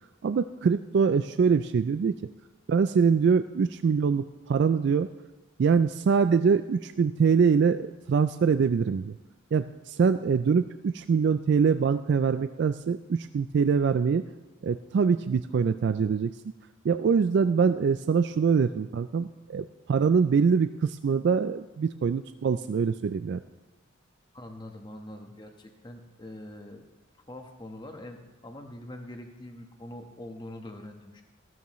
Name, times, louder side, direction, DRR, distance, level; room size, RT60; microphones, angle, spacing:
voice 1, 0.2-2.1 2.7-5.1 5.6-9.2 9.5-14.2 14.6-16.3 16.8-23.4, right 6 dB, 60° right, 11 dB, 0.3 m, -24 dB
voice 2, 24.3-26.8 27.3-31.2, left 1 dB, 25° left, 4 dB, 1.2 m, -43 dB
15.5 x 12.5 x 3.1 m, 1.2 s
head